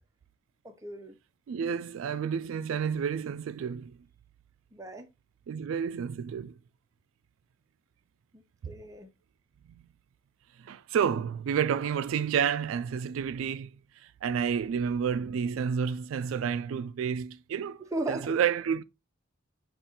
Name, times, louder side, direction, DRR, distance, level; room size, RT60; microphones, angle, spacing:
voice 1, 0.6-1.2 4.7-5.1 8.3-9.1 17.8-18.3, right 2 dB, 15° right, 0.6 m, -37 dB
voice 2, 1.5-4.0 5.5-6.6 8.6-8.7 9.7-9.8 10.6-13.7 14.0-17.8 18.1-18.8, right 7 dB, 85° right, 0.3 m, -30 dB
5.8 x 2.4 x 3.7 m
head